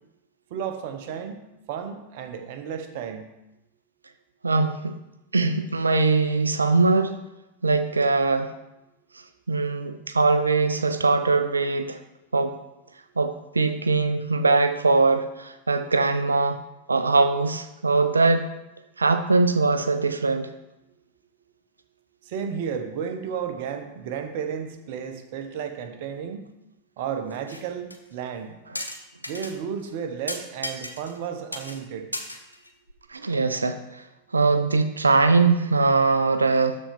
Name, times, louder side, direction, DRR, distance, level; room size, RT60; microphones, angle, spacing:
voice 1, 0.5-1.4 1.7-3.3 22.3-26.5 27.0-28.6 29.3-32.1, right 7 dB, 50° right, 7 dB, 0.9 m, -33 dB
voice 2, 4.4-5.0 5.3-7.2 7.6-8.5 9.5-12.0 12.3-12.6 13.2-16.6 16.9-18.5 19.0-20.5 28.7-28.8 33.1-34.0 34.3-36.8, right 3 dB, 75° right, 10 dB, 0.4 m, -21 dB
sound 1, 27.3-27.6 27.9-28.0 28.8-29.5 29.9-30.0 30.3-31.3 31.5-31.8 32.1-32.9, left 1 dB, 85° left, 0.7 m, -34 dB
12.5 x 4.3 x 3.5 m, 0.93 s
figure-of-eight pair, 90°, 0 cm